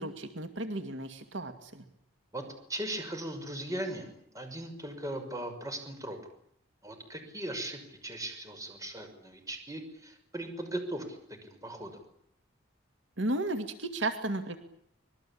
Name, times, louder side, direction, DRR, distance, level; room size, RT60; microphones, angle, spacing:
voice 1, 0.0-1.8 13.2-14.6, right 2 dB, 75° right, 7 dB, 2.4 m, -34 dB
voice 2, 2.7-6.2 6.8-12.0, right 1 dB, 15° right, 6 dB, 6.0 m, -38 dB
26.0 x 21.5 x 8.7 m, 0.71 s
head